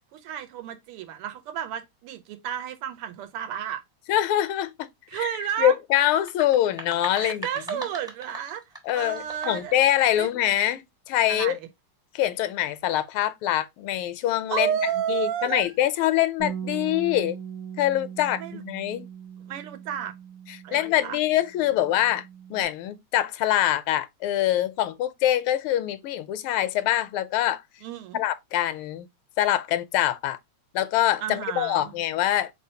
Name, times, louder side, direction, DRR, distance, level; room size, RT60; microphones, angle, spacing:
voice 1, 0.1-3.8 5.1-5.7 7.2-8.6 8.9-9.8 10.2-10.3 11.3-11.6 14.5-15.7 18.4-18.6 19.5-20.1 20.6-21.2 27.8-28.2 31.2-31.9, right 9 dB, 85° right, 1.7 m, -31 dB
voice 2, 4.1-5.3 5.6-7.9 8.8-11.6 12.1-14.7 15.1-17.4 17.8-19.0 20.7-22.2 22.5-27.6 28.1-29.1 29.4-30.4 30.7-32.5, left 12 dB, 80° left, 1.4 m, -24 dB
sound 1, 6.1-9.8, equal, 5° right, 0.5 m, -40 dB
Bass guitar, 16.4-21.1 21.4-22.6, right 8 dB, 55° right, 1.1 m, -39 dB
4.3 x 3.8 x 2.7 m
omnidirectional pair, 2.4 m